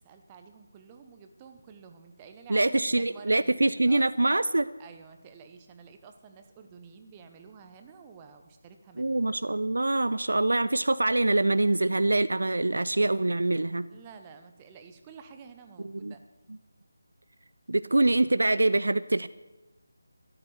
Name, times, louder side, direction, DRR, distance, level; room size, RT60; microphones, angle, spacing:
voice 1, 0.0-3.5 3.9-4.0 4.8-9.4 13.9-16.2, right 6 dB, 15° right, 7 dB, 1.1 m, -50 dB
voice 2, 2.5-4.7 9.0-13.8 15.8-16.1 17.7-19.3, right 2 dB, 65° right, 15 dB, 0.5 m, -24 dB
13.5 x 12.0 x 8.1 m, 1.1 s
figure-of-eight pair, 160°, 0 cm